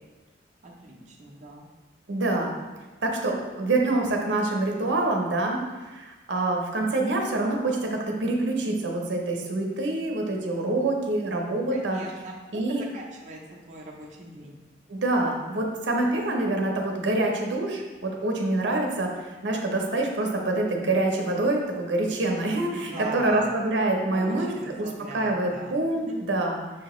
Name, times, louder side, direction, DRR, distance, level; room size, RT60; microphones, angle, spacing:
voice 1, 0.6-1.7 11.7-13.4 13.7-14.5 22.7-23.6 24.1-26.2, right 2 dB, 40° right, -2 dB, 0.6 m, -40 dB
voice 2, 2.1-2.5 3.0-5.6 5.9-12.0 12.5-12.8 14.9-19.1 19.4-26.6, right 2 dB, 75° right, 1 dB, 0.7 m, -26 dB
6.2 x 2.9 x 3.0 m, 1.2 s
head